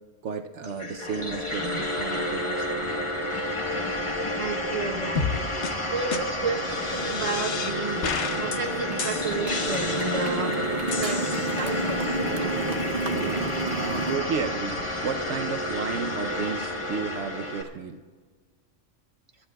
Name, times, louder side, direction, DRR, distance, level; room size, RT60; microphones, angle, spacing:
voice 1, 0.2-3.2 10.9-11.0 13.7-18.0, right 5 dB, 70° right, 7 dB, 1.0 m, -33 dB
sound 1, 0.6-17.6, left 1 dB, 25° left, 1.1 m, -30 dB
voice 2, 4.4-5.2 5.9-8.0 8.4-10.6 11.0-12.2, right 3 dB, 25° right, 2 dB, 1.3 m, -32 dB
sound 2, 5.2-5.4 5.6-5.7 6.1-6.2 6.6-7.7 8.0-8.6 9.0-10.4 10.9-11.9, left 5 dB, 70° left, 1.2 m, -32 dB
Motorcycle, 6.9-14.2, right 3 dB, 50° right, 1.0 m, -31 dB
27.0 x 13.5 x 2.3 m, 1.5 s
omnidirectional pair, 1.3 m